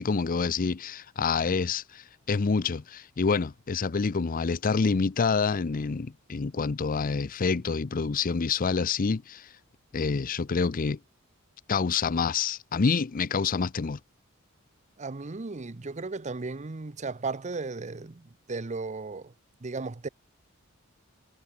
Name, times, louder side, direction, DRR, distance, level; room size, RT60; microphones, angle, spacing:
voice 1, 0.0-9.5 9.9-11.0 11.7-14.0, left 5 dB, 40° left, 0.5 m, -27 dB
voice 2, 15.0-19.3 19.6-20.1, right 3 dB, 35° right, 0.7 m, -35 dB
head